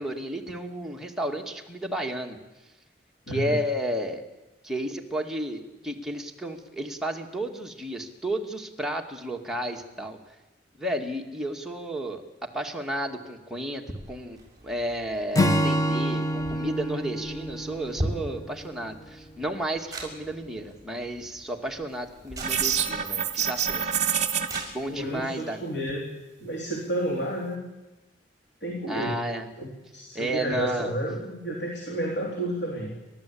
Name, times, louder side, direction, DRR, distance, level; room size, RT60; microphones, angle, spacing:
voice 1, 0.0-2.4 3.3-4.2 4.6-10.2 10.8-12.2 12.5-23.9 24.7-25.7 28.9-29.5 30.1-30.9, right 1 dB, 5° right, 1 dB, 2.2 m, -32 dB
voice 2, 3.3-3.6 24.9-26.0 26.4-27.7 28.6-29.2 29.6-32.9, right 1 dB, 70° left, 0 dB, 3.5 m, -31 dB
sound 1, 14.0-25.3, right 1 dB, 20° right, 6.2 m, -41 dB
Acoustic guitar / Strum, 15.3-18.8, equal, 20° left, 1.3 m, -27 dB
sound 2, 22.4-24.6, right 8 dB, 40° right, 1.8 m, -26 dB
30.0 x 13.0 x 8.7 m, 1.0 s
head